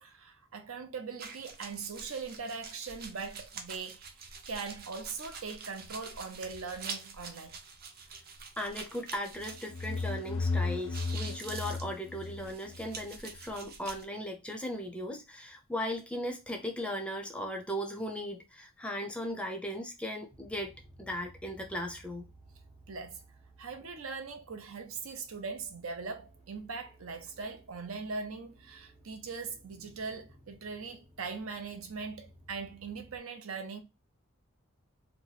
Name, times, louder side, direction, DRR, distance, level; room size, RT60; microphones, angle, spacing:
voice 1, 0.0-4.0 4.5-7.6 22.9-23.2 23.6-33.8, right 4 dB, 85° right, 0.7 m, -40 dB
sound 1, 1.2-10.5 10.7-14.0, right 5 dB, 45° right, 0.6 m, -46 dB
voice 2, 8.6-22.3, equal, 5° left, 0.5 m, -37 dB
sound 2, 9.4-13.1, left 3 dB, 60° left, 0.4 m, -35 dB
sound 3, 20.3-33.2, right 1 dB, 25° right, 1.0 m, -59 dB
2.9 x 2.2 x 3.9 m
head